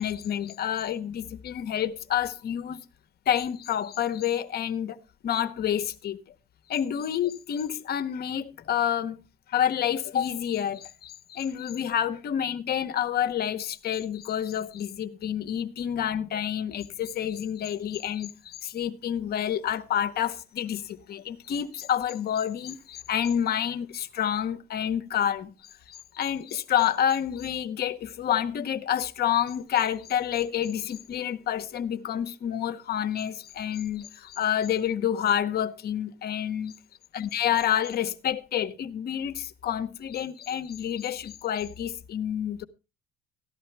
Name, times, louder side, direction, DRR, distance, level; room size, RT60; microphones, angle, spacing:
voice 1, 0.0-2.8 3.3-5.0 5.2-6.2 6.7-9.2 9.5-25.5 25.9-36.8 37.1-42.6, left 9 dB, 50° left, 0.9 m, -28 dB
14.0 x 11.0 x 3.3 m
cardioid pair, 110°, 21 cm